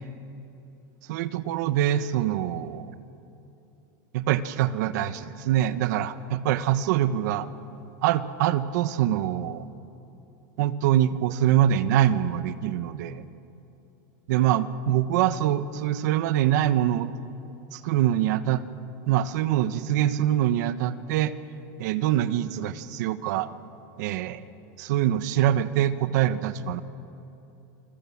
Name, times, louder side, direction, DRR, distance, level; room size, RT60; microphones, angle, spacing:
voice 1, 1.1-2.9 4.1-7.5 8.0-9.7 10.6-13.2 14.3-17.1 17.7-18.7 19.1-21.3 21.8-23.5 24.0-24.4 24.8-26.8, right 11 dB, 70° right, 13 dB, 1.2 m, -24 dB
28.5 x 22.5 x 7.3 m, 2.9 s
supercardioid pair, 155°, 10 cm